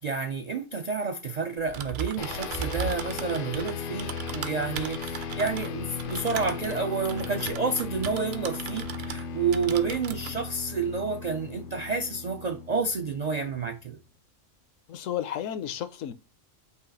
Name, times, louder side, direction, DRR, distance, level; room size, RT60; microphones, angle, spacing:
voice 1, 0.0-14.0, right 4 dB, 80° right, 0.3 m, -30 dB
Typing, 1.6-9.3 9.5-10.3, right 7 dB, 60° right, 0.7 m, -37 dB
sound 1, 2.2-13.9, left 6 dB, 60° left, 0.6 m, -37 dB
voice 2, 14.9-16.1, left 10 dB, 75° left, 1.0 m, -32 dB
5.6 x 2.4 x 3.9 m
omnidirectional pair, 1.4 m